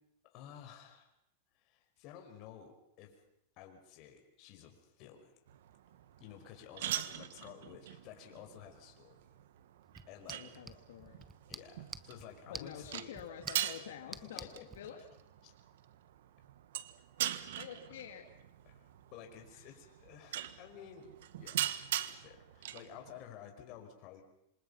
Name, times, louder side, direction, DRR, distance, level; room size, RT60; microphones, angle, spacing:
voice 1, 0.2-1.1 1.5-3.2 3.6-5.4 6.2-9.3 10.1-10.6 11.5-13.1 14.0-14.7 15.4-15.5 18.7-21.7 22.1-24.2, left 9 dB, 45° left, 3 dB, 5.3 m, -53 dB
sound 1, 5.5-23.2, right 12 dB, 75° right, 1.5 m, -42 dB
sound 2, 9.8-14.8, right 3 dB, 10° right, 1.2 m, -50 dB
voice 2, 10.3-11.2 12.5-14.5 14.8-15.0 17.6-18.2 19.5-19.7, left 9 dB, 80° left, 2 dB, 2.7 m, -48 dB
27.0 x 26.0 x 5.7 m, 0.80 s
supercardioid pair, 140°, 0 cm